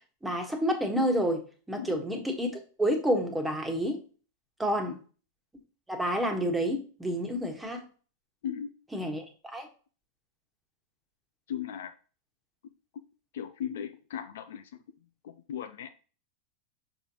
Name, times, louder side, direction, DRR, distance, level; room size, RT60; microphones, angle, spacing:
voice 1, 0.2-4.0 4.6-5.0 5.9-7.8 8.9-9.7, equal, 5° right, 1.4 m, -29 dB
voice 2, 11.5-11.9 13.3-14.6 15.2-15.9, left 9 dB, 60° left, 0.5 m, -37 dB
6.5 x 5.3 x 2.9 m
figure-of-eight pair, 90°, 0 cm